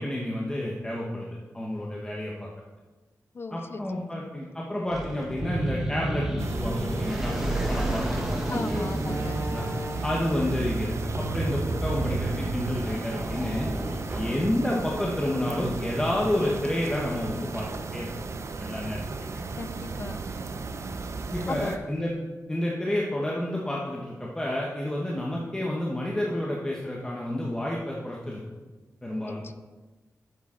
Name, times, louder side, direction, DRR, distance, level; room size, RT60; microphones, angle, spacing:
voice 1, 0.0-2.5 3.5-9.7 10.0-13.7 14.1-18.1 18.6-19.3 21.3-22.1 22.5-28.4 29.0-29.4, left 1 dB, 15° left, -3 dB, 1.2 m, -30 dB
voice 2, 3.3-3.8 4.2-4.3 8.5-9.4 19.5-20.3 21.5-21.8 29.4-29.5, left 4 dB, 40° left, 11 dB, 0.6 m, -36 dB
sound 1, 4.9-14.4, right 1 dB, 5° right, 1.6 m, -32 dB
sound 2, 6.4-21.8, right 4 dB, 55° right, 0.7 m, -34 dB
Slam, 7.9-8.1 8.9-10.5 11.5-13.0 13.3-13.4 14.1-14.7, right 1 dB, 35° right, 2.5 m, -36 dB
10.5 x 8.1 x 3.9 m, 1.2 s
wide cardioid pair, 125°, 6 cm